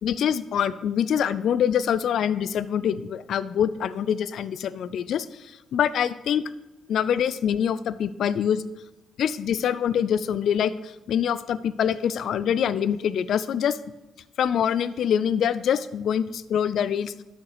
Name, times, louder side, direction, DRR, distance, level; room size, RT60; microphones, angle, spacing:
voice 1, 0.0-5.3 5.7-6.4 6.9-8.6 9.2-13.8 14.4-17.1, left 8 dB, 70° left, 16 dB, 0.4 m, -25 dB
8.7 x 6.4 x 4.9 m, 0.99 s
cardioid pair, 90°, 0 cm